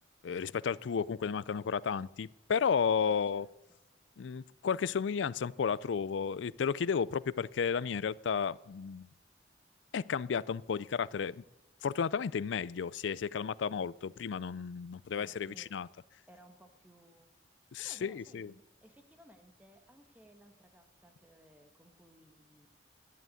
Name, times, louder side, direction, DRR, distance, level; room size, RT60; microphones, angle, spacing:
voice 1, 0.2-3.5 4.2-9.1 9.9-11.4 11.8-15.9 17.7-18.5, left 6 dB, 80° left, 0.4 m, -33 dB
voice 2, 3.0-3.8 15.2-15.8 16.3-17.3 17.8-22.7, right 1 dB, 10° right, 1.6 m, -60 dB
11.0 x 10.5 x 9.3 m
head